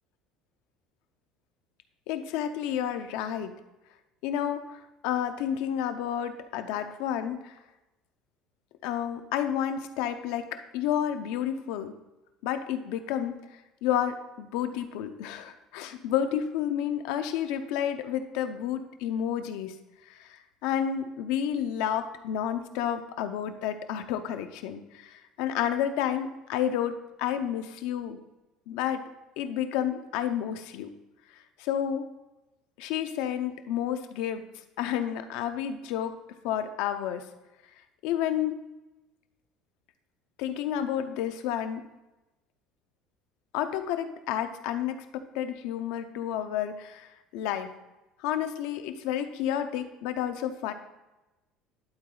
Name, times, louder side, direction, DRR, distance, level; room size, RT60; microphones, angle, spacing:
voice 1, 2.1-3.5 4.2-7.6 8.8-11.9 12.4-13.4 13.8-19.7 20.1-28.2 28.7-29.0 29.4-30.9 31.3-32.1 32.8-34.4 34.8-36.2 36.4-37.3 38.0-38.6 40.4-41.8 43.5-47.7 48.2-50.7, left 10 dB, 70° left, 8 dB, 0.7 m, -30 dB
11.5 x 4.1 x 3.9 m, 1.0 s
cardioid pair, 170°, 0 cm